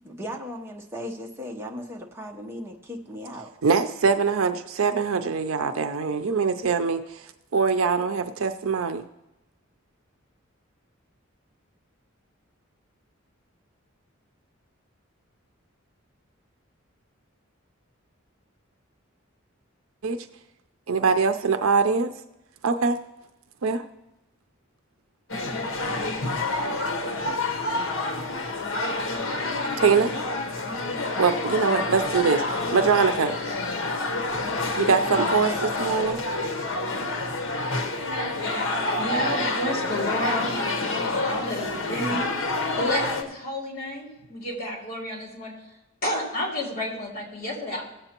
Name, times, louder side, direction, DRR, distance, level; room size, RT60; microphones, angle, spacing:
voice 1, 0.0-3.6, equal, 10° right, 0 dB, 1.0 m, -37 dB
voice 2, 3.6-7.2 7.5-9.0 20.0-20.3 20.9-22.1 22.6-23.0 23.6-23.8 29.8-30.1 31.2-32.4 32.7-33.4 34.8-36.2, right 5 dB, 80° right, 8 dB, 0.5 m, -23 dB
sound 1, 25.3-43.2, left 2 dB, 70° left, 1.1 m, -28 dB
voice 3, 39.0-42.5 42.8-45.5 46.0-47.8, left 1 dB, 45° left, -3 dB, 3.2 m, -31 dB
17.5 x 7.9 x 2.9 m, 0.93 s
head